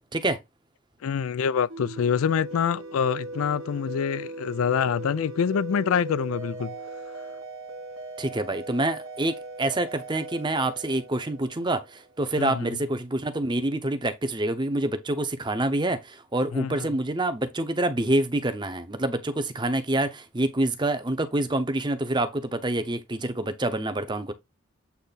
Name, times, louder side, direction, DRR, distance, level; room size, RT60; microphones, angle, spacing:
voice 1, 1.0-6.8 12.4-12.8 16.5-17.0, left 7 dB, 75° left, 0.4 m, -26 dB
sound 1, 1.7-12.0, right 2 dB, 70° right, 1.1 m, -39 dB
voice 2, 8.2-24.3, right 1 dB, 20° right, 0.8 m, -27 dB
8.4 x 3.3 x 4.1 m
head